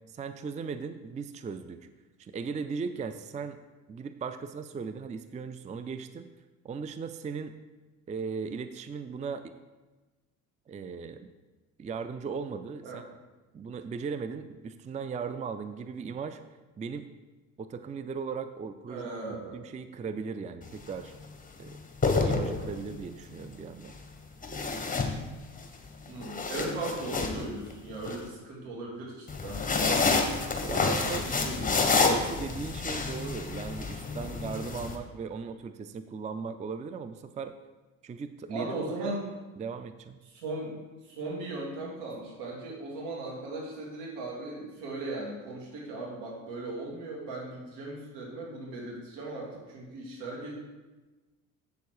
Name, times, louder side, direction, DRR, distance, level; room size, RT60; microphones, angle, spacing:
voice 1, 0.1-1.8 2.2-3.6 3.9-6.3 6.6-7.6 8.1-9.5 10.7-11.3 11.8-13.0 13.5-16.4 16.8-17.1 17.6-21.1 21.6-21.8 22.1-24.0 30.7-31.2 32.0-37.6 38.0-39.2 39.6-40.2, right 5 dB, 20° right, 11 dB, 0.4 m, -37 dB
voice 2, 18.9-19.6 26.1-29.6 30.6-32.1 34.2-34.4 38.5-39.2 40.2-50.5, right 2 dB, 75° right, -2 dB, 2.7 m, -38 dB
sound 1, 20.6-20.9 21.8-23.0 24.4-25.6 26.1-28.2 29.3-35.0, left 4 dB, 20° left, 1.4 m, -28 dB
8.1 x 6.8 x 4.7 m, 1.2 s
hypercardioid pair, 65°, 41 cm